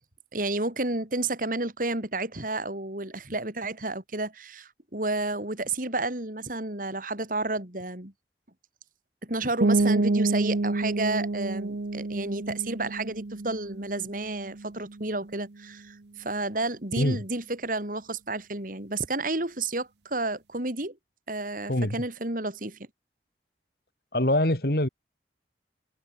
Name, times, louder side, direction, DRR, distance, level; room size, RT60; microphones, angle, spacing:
voice 1, 0.3-8.1 9.2-21.0 21.3-22.8, right 2 dB, 50° right, 3.5 m, -31 dB
sound 1, 9.6-15.2, right 2 dB, 70° right, 0.9 m, -28 dB
voice 2, 16.9-17.2 21.7-22.0 24.1-24.9, left 1 dB, 55° left, 3.1 m, -24 dB
head